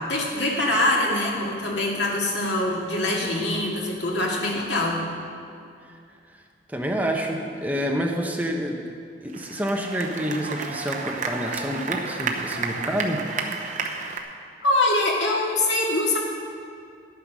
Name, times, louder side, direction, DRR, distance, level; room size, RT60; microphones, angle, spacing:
voice 1, 0.0-5.0 14.6-16.2, left 2 dB, 85° left, -2 dB, 2.2 m, -24 dB
voice 2, 6.7-8.8 9.2-13.2, equal, 10° right, 1 dB, 0.9 m, -28 dB
sound 1, 9.3-14.2, right 5 dB, 45° right, 0.9 m, -31 dB
11.0 x 9.2 x 6.2 m, 2.4 s
head